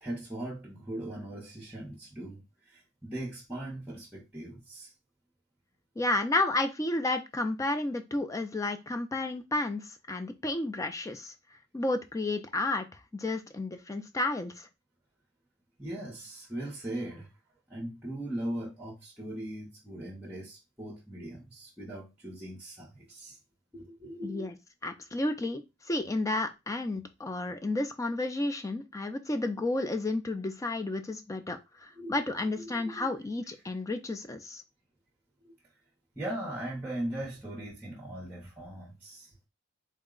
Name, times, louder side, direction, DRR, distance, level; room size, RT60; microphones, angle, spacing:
voice 1, 0.0-4.9 15.8-17.3 17.7-23.4 23.7-24.5 32.0-32.2 32.6-33.1 35.4-35.5 36.2-39.3, right 1 dB, 5° right, 0.7 m, -39 dB
voice 2, 6.0-11.3 11.7-12.8 13.1-14.7 24.2-24.6 24.8-34.6, left 2 dB, 15° left, 0.3 m, -31 dB
3.7 x 2.1 x 3.7 m
head